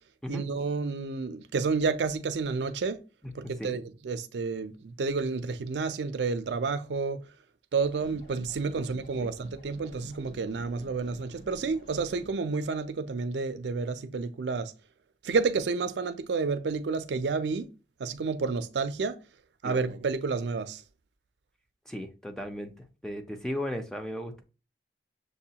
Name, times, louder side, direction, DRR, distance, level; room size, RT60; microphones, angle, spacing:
voice 1, 0.3-3.0 3.3-7.2 7.7-14.7 15.2-17.7 18.0-19.2 19.6-20.8, right 4 dB, 80° right, 0.4 m, -30 dB
sound 1, 7.9-12.3, right 1 dB, 85° left, 1.7 m, -50 dB
voice 2, 21.9-22.7 23.0-24.4, equal, 5° left, 0.5 m, -36 dB
6.6 x 2.3 x 2.8 m
head